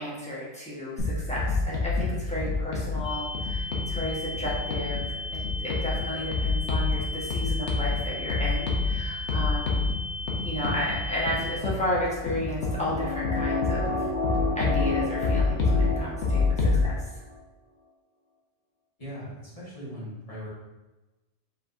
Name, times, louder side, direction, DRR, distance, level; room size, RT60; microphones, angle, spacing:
voice 1, 0.0-9.9 10.4-14.1 14.5-16.9, left 1 dB, 5° left, -7 dB, 1.1 m, -33 dB
sound 1, 1.0-16.8, left 3 dB, 85° left, 1.2 m, -28 dB
sound 2, 3.0-11.6, left 3 dB, 45° right, 0.9 m, -37 dB
sound 3, 12.2-17.0 17.3-17.4, left 4 dB, 65° left, 1.1 m, -31 dB
voice 2, 19.0-20.5, equal, 30° left, -8 dB, 1.6 m, -39 dB
5.1 x 3.5 x 2.6 m, 1.1 s
omnidirectional pair, 1.2 m